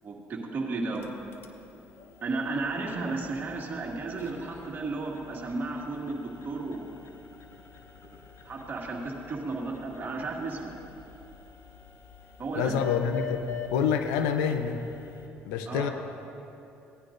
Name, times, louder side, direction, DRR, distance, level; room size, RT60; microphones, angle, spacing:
voice 1, 0.0-1.1 2.2-7.0 8.4-10.7 12.4-12.8 15.7-15.9, right 3 dB, 45° right, -2 dB, 2.1 m, -33 dB
sound 1, 0.8-15.3, left 8 dB, 55° left, 1.0 m, -45 dB
voice 2, 12.6-13.4 13.7-14.8 15.5-15.9, left 7 dB, 90° left, 7 dB, 0.7 m, -27 dB
17.5 x 10.0 x 2.6 m, 2.9 s
supercardioid pair, 80°, 5 cm